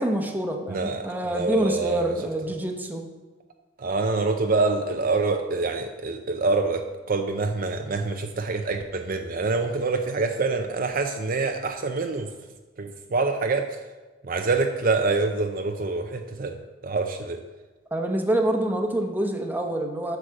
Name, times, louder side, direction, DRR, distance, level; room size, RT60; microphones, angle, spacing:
voice 1, 0.0-3.0 17.9-20.2, right 1 dB, 10° right, 3 dB, 1.0 m, -26 dB
voice 2, 0.7-2.0 3.8-12.3 12.8-13.7 14.2-16.6 16.8-17.4, right 3 dB, 50° right, 5 dB, 0.6 m, -26 dB
8.2 x 6.3 x 6.4 m, 1.2 s
head